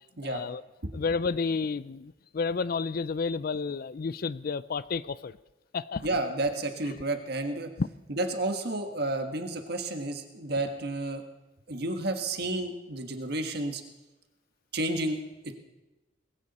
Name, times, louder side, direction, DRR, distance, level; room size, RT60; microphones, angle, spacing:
voice 1, 0.2-0.6 0.9-5.4 5.7-6.2 7.8-7.9, left 4 dB, 50° left, 17 dB, 0.4 m, -31 dB
voice 2, 6.0-7.7 8.1-11.2 11.7-13.8 14.7-15.6, right 2 dB, 55° right, 6 dB, 1.5 m, -31 dB
20.0 x 16.5 x 4.2 m, 1.1 s
head